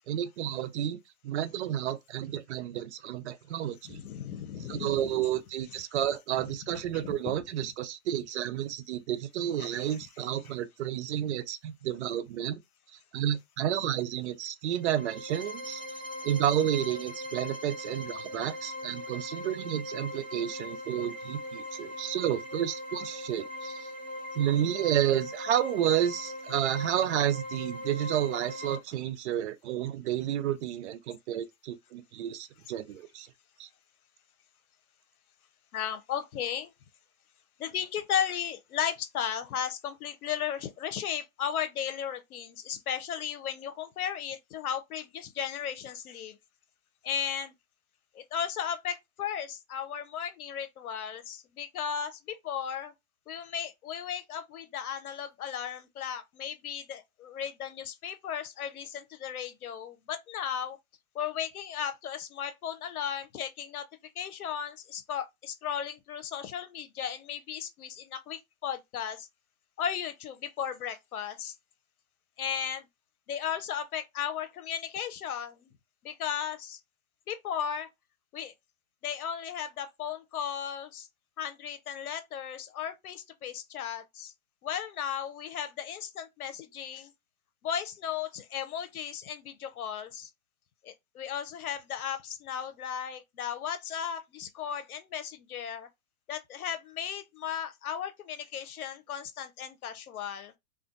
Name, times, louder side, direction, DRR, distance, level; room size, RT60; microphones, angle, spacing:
voice 1, 0.1-1.0 1.2-4.0 4.7-12.6 13.1-15.8 16.2-23.9 24.3-33.3 33.6-33.7, right 11 dB, 50° right, 0.5 m, -31 dB
voice 2, 3.8-5.1 7.0-7.3 9.6-9.9 10.4-10.5 35.7-36.7 37.6-46.3 47.0-47.5 48.1-52.9 53.3-60.8 61.1-63.8 64.1-69.3 69.8-71.5 72.4-72.9 73.3-75.7 76.0-76.8 77.3-77.9 78.3-78.5 79.0-81.1 81.4-84.3 84.6-87.1 87.6-90.3 90.8-95.9 96.3-100.5, left 8 dB, 80° left, 0.8 m, -35 dB
sound 1, 14.7-28.8, left 1 dB, 10° right, 1.2 m, -40 dB
2.5 x 2.2 x 2.5 m
hypercardioid pair, 130°, 43 cm